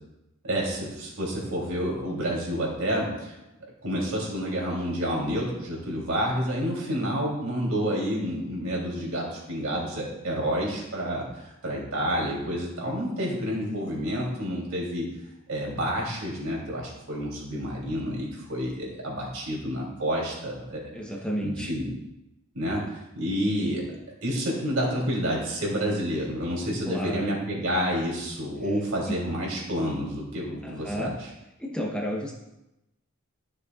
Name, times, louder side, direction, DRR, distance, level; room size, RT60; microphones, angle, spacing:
voice 1, 0.4-3.3 3.8-15.1 15.5-20.8 21.4-21.9 22.5-23.8 24.2-31.1, equal, 75° right, -3 dB, 3.0 m, -29 dB
voice 2, 20.9-21.7 26.9-27.4 28.7-28.8 29.1-29.2 30.6-31.1 31.6-32.3, equal, 5° left, -1 dB, 0.9 m, -31 dB
13.0 x 6.6 x 2.4 m, 0.93 s
head